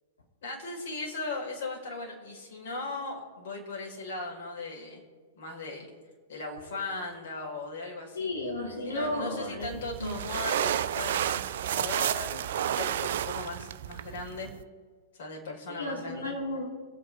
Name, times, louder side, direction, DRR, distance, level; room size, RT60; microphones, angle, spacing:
voice 1, 0.4-5.0 5.4-5.9 6.3-8.3 8.8-14.5 15.2-16.3, left 3 dB, 60° left, -1 dB, 5.4 m, -38 dB
voice 2, 8.1-10.2 12.3-12.4 15.8-16.7, left 1 dB, 80° left, -3 dB, 4.6 m, -34 dB
sound 1, 9.6-14.6, right 10 dB, 60° right, 0.6 m, -31 dB
25.5 x 9.1 x 4.9 m, 1.5 s
figure-of-eight pair, 100°, 0 cm